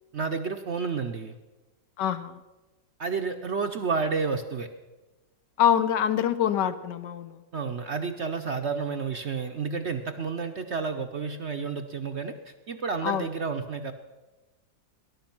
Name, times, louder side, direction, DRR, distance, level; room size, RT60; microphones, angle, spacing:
voice 1, 0.1-1.3 3.0-4.7 7.5-13.9, right 5 dB, 55° right, 6 dB, 0.8 m, -30 dB
voice 2, 2.0-2.4 5.6-7.4 13.0-13.3, left 9 dB, 80° left, 11 dB, 1.5 m, -25 dB
19.5 x 11.0 x 5.9 m, 1.1 s
omnidirectional pair, 1.9 m